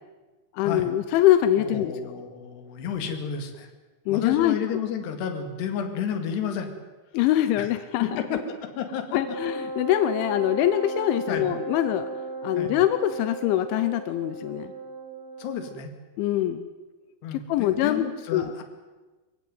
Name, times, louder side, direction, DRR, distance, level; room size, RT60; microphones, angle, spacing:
voice 1, 0.5-1.9 4.1-4.8 7.1-8.2 9.1-12.1 12.4-14.7 16.2-16.7 17.3-18.1 18.3-18.5, left 12 dB, 90° left, 11 dB, 3.3 m, -23 dB
voice 2, 1.6-3.7 4.1-6.7 7.6-7.7 8.0-8.4 8.8-9.2 11.3-11.5 12.5-12.7 15.4-15.9 17.2-18.6, left 7 dB, 70° left, 6 dB, 4.1 m, -31 dB
Wind instrument woodwind instrument, 9.2-15.8, right 3 dB, 30° right, 2.1 m, -36 dB
24.0 x 16.0 x 9.4 m, 1.2 s
omnidirectional pair, 5.3 m